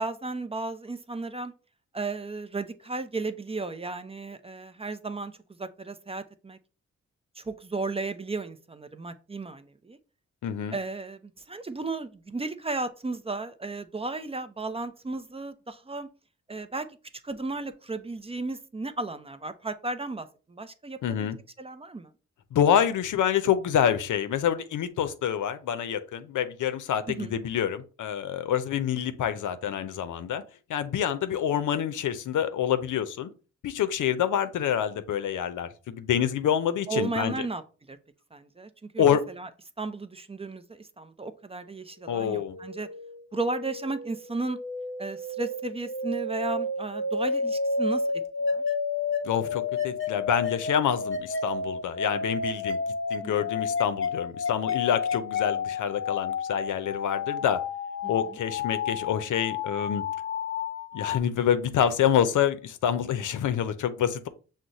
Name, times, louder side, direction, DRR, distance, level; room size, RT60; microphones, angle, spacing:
voice 1, 0.0-1.5 1.9-5.3 5.6-6.6 7.4-10.0 10.7-16.1 16.5-16.9 17.2-21.3 21.6-22.1 27.1-27.4 36.9-37.6 37.9-38.0 38.3-39.0 39.4-39.5 39.8-42.9 43.3-44.6 45.0-48.0 48.4-48.6 53.2-53.3 58.0-58.1, right 3 dB, 20° right, 0.5 m, -34 dB
voice 2, 10.4-10.8 21.0-21.4 22.5-30.4 30.7-33.3 33.6-37.5 39.0-39.2 42.1-42.6 49.2-52.8 53.1-57.6 58.1-60.0 60.9-64.3, left 9 dB, 85° left, 0.6 m, -27 dB
sound 1, 42.0-61.2, left 4 dB, 40° left, 1.1 m, -31 dB
6.1 x 2.1 x 3.9 m
cardioid pair, 75°, 30 cm